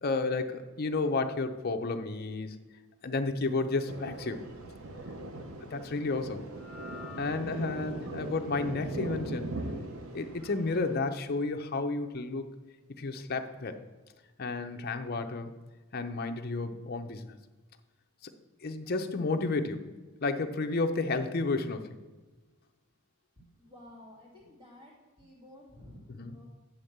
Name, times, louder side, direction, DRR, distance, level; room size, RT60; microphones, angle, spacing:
voice 1, 0.0-2.6 3.0-4.5 5.6-6.4 7.2-9.5 10.1-12.5 13.0-13.8 14.4-15.5 15.9-17.3 18.2-18.3 18.6-19.9 20.2-22.0 26.1-26.4, left 3 dB, 45° left, 6 dB, 0.6 m, -32 dB
Thunder, 3.9-11.0, right 2 dB, 85° right, 0.9 m, -40 dB
sound 1, 6.4-12.8, left 3 dB, 5° right, 1.1 m, -54 dB
voice 2, 23.4-26.5, left 1 dB, 25° right, -5 dB, 2.6 m, -53 dB
9.5 x 3.5 x 6.7 m, 1.2 s
head